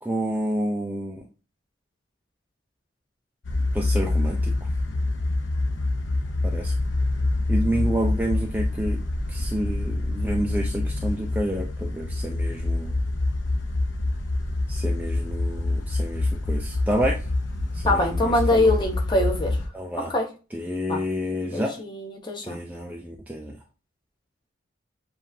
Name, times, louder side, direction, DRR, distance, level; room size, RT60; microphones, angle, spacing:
voice 1, 0.0-1.2 3.7-4.7 6.4-6.7 7.5-9.0 9.3-13.0 14.7-17.3 17.7-18.7 19.7-20.1 20.5-21.7 22.4-23.5, right 1 dB, 10° right, 0 dB, 0.5 m, -29 dB
sound 1, 3.4-19.7, left 2 dB, 65° left, 0.7 m, -26 dB
voice 2, 17.9-19.6 20.0-20.3 20.9-21.0 21.5-22.6, left 1 dB, 25° left, 2 dB, 0.9 m, -23 dB
7.1 x 2.5 x 2.7 m, 0.32 s
head